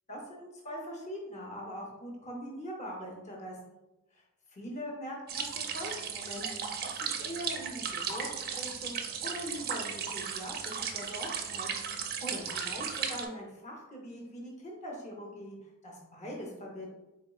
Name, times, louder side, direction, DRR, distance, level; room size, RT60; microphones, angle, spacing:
voice 1, 0.1-3.8 4.1-11.9 12.2-15.6 15.8-16.9, equal, 35° left, -1 dB, 0.6 m, -42 dB
sound 1, 5.3-13.3, right 6 dB, 45° right, 0.5 m, -36 dB
4.0 x 3.8 x 2.3 m, 1.0 s
head